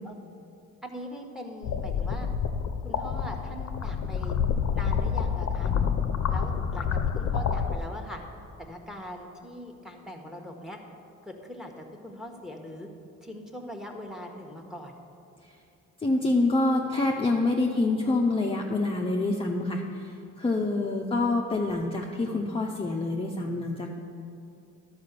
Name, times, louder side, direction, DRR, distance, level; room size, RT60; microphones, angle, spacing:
voice 1, 0.8-2.3 2.8-4.4 4.7-5.7 6.3-8.2 8.6-10.8 11.2-12.9 13.2-14.9, equal, ahead, 3 dB, 1.2 m, -41 dB
sound 1, 1.6-7.8, left 7 dB, 60° left, 0.7 m, -28 dB
voice 2, 16.0-24.0, left 2 dB, 20° left, 0 dB, 0.7 m, -26 dB
11.5 x 4.8 x 6.7 m, 2.7 s
cardioid pair, 90°, 30 cm